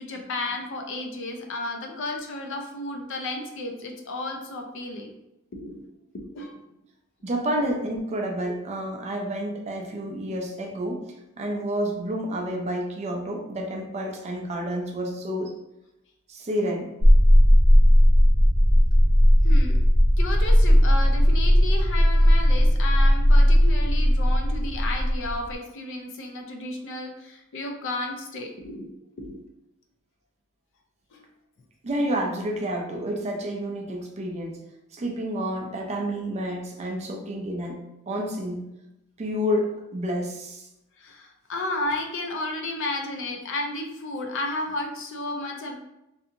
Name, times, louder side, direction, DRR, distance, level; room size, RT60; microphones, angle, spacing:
voice 1, 0.0-5.1 5.5-5.8 6.1-6.6 19.4-19.8 20.2-28.9 29.2-29.4 31.1-31.3 41.0-45.8, left 2 dB, 60° left, 3 dB, 0.4 m, -33 dB
voice 2, 7.2-11.0 11.4-15.5 16.3-16.9 31.8-34.6 34.9-37.8 38.1-38.6 39.2-40.7, equal, 30° right, 1 dB, 0.4 m, -29 dB
sound 1, 17.0-25.5, equal, 70° right, 0.7 m, -17 dB
2.7 x 2.6 x 2.5 m, 0.89 s
head